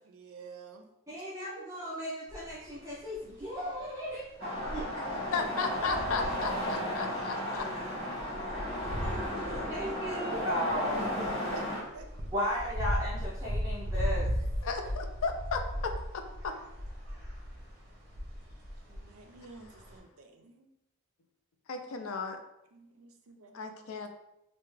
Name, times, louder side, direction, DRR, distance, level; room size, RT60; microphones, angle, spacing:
voice 1, 0.0-1.3 1.6-1.7 11.5-11.7 11.9-12.1 18.9-20.7 22.7-23.8, right 4 dB, 80° right, 5 dB, 0.4 m, -50 dB
voice 2, 1.1-5.1 9.7-11.3 12.3-14.3, equal, 15° right, -8 dB, 0.6 m, -36 dB
sound 1, 2.3-2.7 2.9-4.3 4.6-20.0, equal, 45° right, 0.8 m, -37 dB
sound 2, 4.4-11.8, equal, 30° right, 1.5 m, -34 dB
voice 3, 5.3-7.6 14.6-16.5 21.7-22.4 23.5-24.1, left 4 dB, 70° left, 5 dB, 0.4 m, -35 dB
voice 4, 7.1-10.7 11.2-11.5, left 1 dB, 15° left, -9 dB, 1.0 m, -53 dB
3.3 x 2.1 x 3.2 m, 0.86 s
head